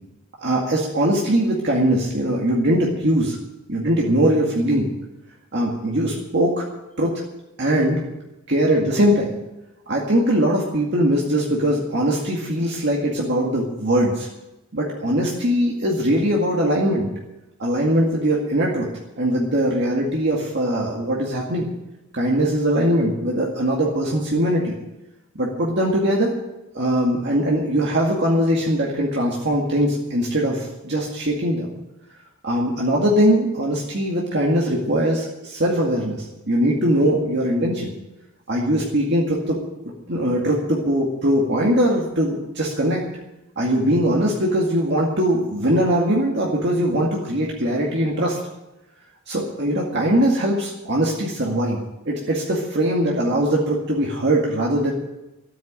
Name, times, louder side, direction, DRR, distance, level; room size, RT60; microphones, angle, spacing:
voice 1, 0.4-3.4 3.7-4.9 5.5-6.7 7.0-7.2 7.6-8.0 8.5-9.3 9.9-14.3 14.7-17.1 17.6-18.9 19.2-21.7 22.1-24.7 25.4-26.3 26.7-31.7 32.4-37.9 38.5-39.6 40.1-43.0 43.6-48.4 49.3-51.8 52.1-54.9, equal, 50° right, -3 dB, 2.1 m, -21 dB
13.5 x 9.4 x 8.8 m, 0.96 s
head